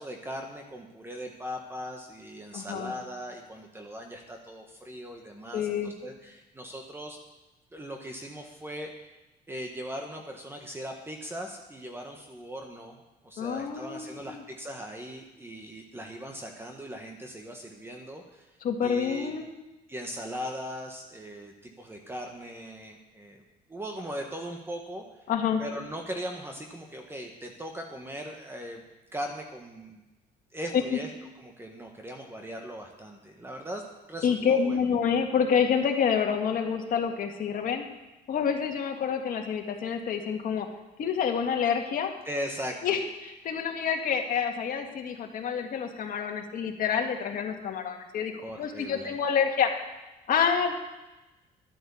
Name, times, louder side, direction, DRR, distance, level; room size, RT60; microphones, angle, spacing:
voice 1, 0.0-7.2 7.7-9.1 9.5-13.0 13.2-19.3 19.9-23.4 23.7-25.3 25.6-28.8 29.1-30.0 30.5-31.1 31.3-34.8 42.2-43.0 48.4-49.1, equal, 15° right, 2 dB, 1.5 m, -39 dB
voice 2, 2.5-2.9 5.5-5.9 13.4-14.4 18.6-19.5 25.3-25.6 30.7-31.0 34.2-37.8 38.3-40.7 41.0-42.1 42.8-49.7 50.3-50.7, left 7 dB, 55° left, 3 dB, 1.9 m, -28 dB
12.5 x 8.7 x 7.1 m, 1.0 s
cardioid pair, 110°, 17 cm